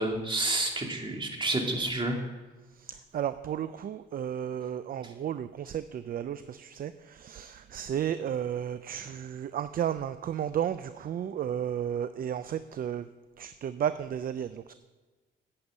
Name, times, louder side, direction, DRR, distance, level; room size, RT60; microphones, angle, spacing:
voice 1, 0.0-2.2, right 2 dB, 25° right, 1 dB, 2.5 m, -29 dB
voice 2, 2.9-13.1 13.4-14.7, right 9 dB, 45° right, 13 dB, 0.5 m, -33 dB
8.7 x 7.9 x 8.4 m, 1.3 s
cardioid pair, 90°, 20 cm